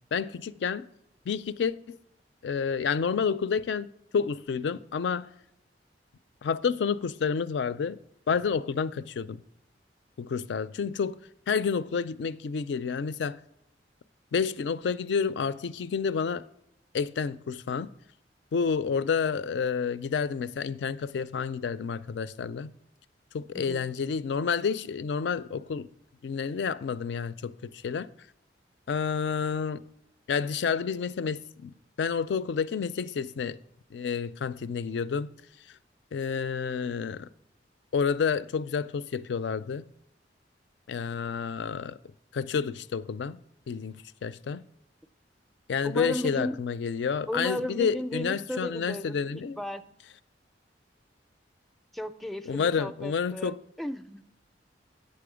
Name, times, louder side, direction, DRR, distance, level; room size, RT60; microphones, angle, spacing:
voice 1, 0.1-0.9 1.3-2.0 2.4-3.9 4.1-5.3 6.4-8.0 8.3-9.4 10.2-11.2 11.5-13.4 14.3-16.4 16.9-17.9 18.5-22.7 23.3-25.9 26.2-28.1 28.9-29.8 30.3-33.6 33.9-35.3 36.1-37.3 37.9-39.9 40.9-42.0 42.3-43.4 43.7-44.6 45.7-49.6 52.5-53.6, left 6 dB, 70° left, 0.4 m, -29 dB
voice 2, 23.5-23.9 45.8-46.6 47.3-49.8 51.9-54.2, equal, ahead, 0.4 m, -35 dB
8.7 x 6.8 x 4.9 m
head